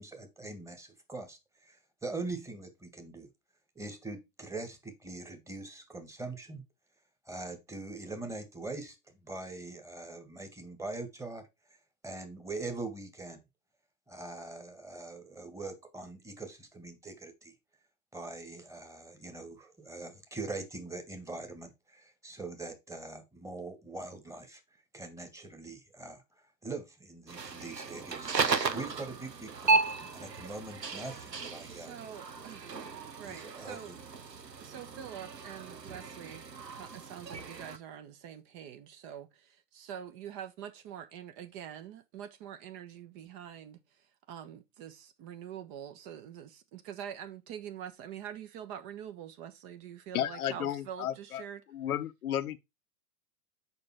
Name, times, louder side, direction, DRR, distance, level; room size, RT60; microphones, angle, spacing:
voice 1, 0.0-3.3 3.7-6.6 7.2-11.5 12.0-13.4 14.1-17.5 18.1-24.6 24.9-26.2 26.6-31.9 33.2-34.0, right 3 dB, 5° right, 1.6 m, -42 dB
sound 1, 27.3-37.8, right 4 dB, 90° right, 1.0 m, -35 dB
voice 2, 31.7-32.9 33.1-33.9 34.6-36.4 36.7-51.6, right 9 dB, 35° right, 1.3 m, -45 dB
voice 3, 50.1-51.4 51.7-52.6, left 10 dB, 65° left, 0.9 m, -33 dB
6.8 x 5.3 x 4.6 m
figure-of-eight pair, 105°, 48 cm